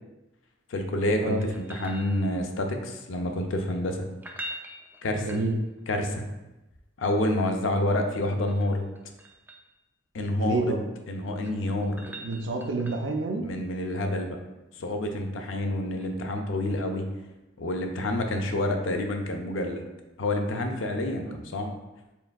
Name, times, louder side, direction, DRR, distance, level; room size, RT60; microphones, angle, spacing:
voice 1, 0.7-4.1 5.0-5.3 5.9-6.2 7.0-8.9 10.1-10.7 11.1-12.0 13.4-14.4 14.8-17.1 17.6-19.9 20.2-21.7, left 1 dB, 90° left, 4 dB, 0.5 m, -28 dB
sound 1, 1.4-2.6 4.1-5.9 8.1-9.7 11.1-13.2 16.0-16.1, right 1 dB, 10° right, 0.4 m, -44 dB
voice 2, 5.2-5.5 10.3-10.8 12.0-13.4 21.2-21.4, right 3 dB, 75° right, 4 dB, 0.5 m, -29 dB
4.5 x 3.4 x 2.3 m, 1.0 s
head